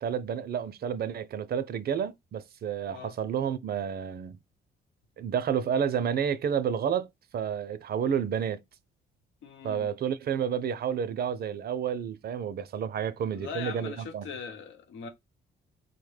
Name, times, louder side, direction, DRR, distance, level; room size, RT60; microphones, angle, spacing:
voice 1, 0.0-4.4 5.2-7.1 7.3-8.6 9.6-14.3, right 8 dB, 50° right, 0.5 m, -30 dB
voice 2, 9.4-9.9 13.3-15.1, left 6 dB, 80° left, 1.0 m, -40 dB
4.2 x 2.1 x 3.2 m
cardioid pair, 90°, 20 cm